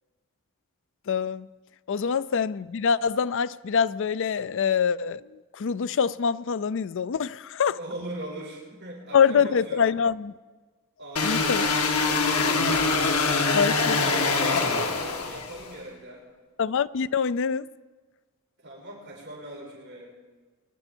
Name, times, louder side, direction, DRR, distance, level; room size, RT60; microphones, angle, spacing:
voice 1, 1.1-1.5 1.9-5.2 5.6-7.8 9.1-10.3 11.2-11.6 13.5-14.0 16.6-17.7, left 6 dB, 60° left, 0.4 m, -25 dB
voice 2, 7.7-9.9 11.0-12.5 13.9-16.2 18.6-20.1, right 1 dB, 55° right, 5.6 m, -40 dB
sound 1, 11.2-15.7, left 4 dB, 90° left, 1.6 m, -24 dB
24.0 x 11.5 x 4.5 m
head